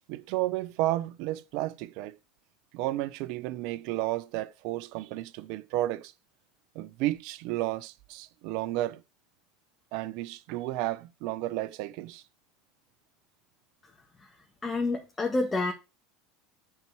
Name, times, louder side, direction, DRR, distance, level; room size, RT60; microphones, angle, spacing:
voice 1, 0.1-2.1 2.7-6.1 6.7-9.0 9.9-12.2, right 16 dB, 65° right, 0.7 m, -32 dB
voice 2, 14.6-15.7, left 2 dB, 20° left, 1.7 m, -28 dB
8.9 x 4.5 x 6.1 m
hypercardioid pair, 95°, 0 cm